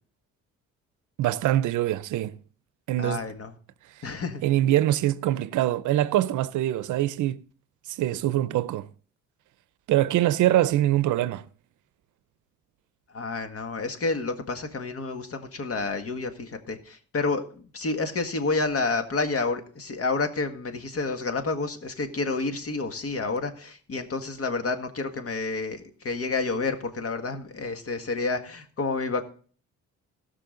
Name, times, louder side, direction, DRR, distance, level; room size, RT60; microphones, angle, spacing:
voice 1, 1.2-2.4 2.9-3.2 4.4-7.4 8.0-8.9 9.9-11.5, right 14 dB, 80° right, 0.6 m, -23 dB
voice 2, 3.0-3.5 4.0-4.4 13.1-29.2, left 3 dB, 50° left, 1.8 m, -29 dB
18.0 x 6.2 x 3.8 m
cardioid pair, 90°, 30 cm